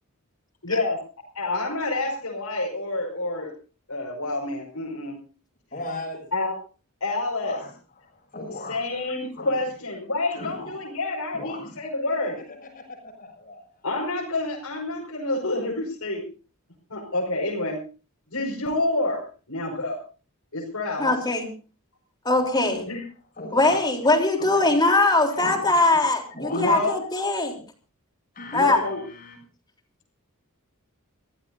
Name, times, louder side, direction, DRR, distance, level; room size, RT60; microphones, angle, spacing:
voice 1, 0.6-1.0 1.4-3.5 3.9-5.2 6.3-6.5 7.0-7.6 8.7-12.4 13.8-16.2 16.9-17.8 18.3-20.0 20.5-21.1 22.9-23.0 25.0-25.1 26.5-26.9 28.5-29.0, left 2 dB, 80° left, -3 dB, 5.4 m, -28 dB
voice 2, 5.7-6.2 7.4-7.7 8.0-8.8 9.4-9.7 10.3-10.8 11.3-11.8 12.1-13.9 22.3-22.7 23.4-23.8 24.4-24.8 25.3-25.8 26.3-26.8 28.3-29.4, left 2 dB, 40° left, 3 dB, 7.1 m, -38 dB
voice 3, 21.0-21.5 22.3-22.8 23.5-27.6 28.5-28.8, left 2 dB, 20° left, 2 dB, 3.5 m, -21 dB
26.0 x 15.5 x 2.7 m, 0.37 s
head